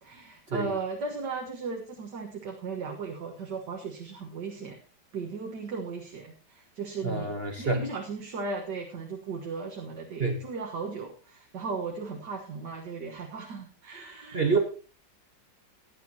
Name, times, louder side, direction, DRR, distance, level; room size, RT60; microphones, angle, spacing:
voice 1, 0.0-4.8 5.1-7.3 7.6-14.6, right 4 dB, 65° right, 1 dB, 2.0 m, -36 dB
voice 2, 7.0-7.8 10.2-10.4 14.3-14.6, right 4 dB, 35° right, 4 dB, 1.3 m, -27 dB
17.0 x 10.5 x 2.9 m, 0.36 s
omnidirectional pair, 2.1 m